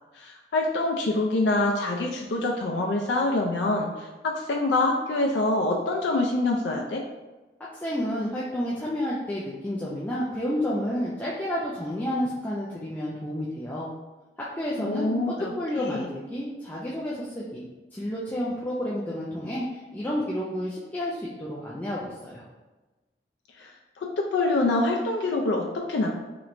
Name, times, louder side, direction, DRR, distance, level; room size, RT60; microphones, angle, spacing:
voice 1, 0.1-7.0 14.8-15.5 15.8-16.1 23.6-23.7 24.0-26.1, left 2 dB, 85° left, 1 dB, 0.4 m, -25 dB
voice 2, 7.8-13.9 14.6-17.6 17.9-22.5, equal, 10° left, -7 dB, 0.3 m, -30 dB
3.1 x 2.9 x 2.5 m, 1.2 s
head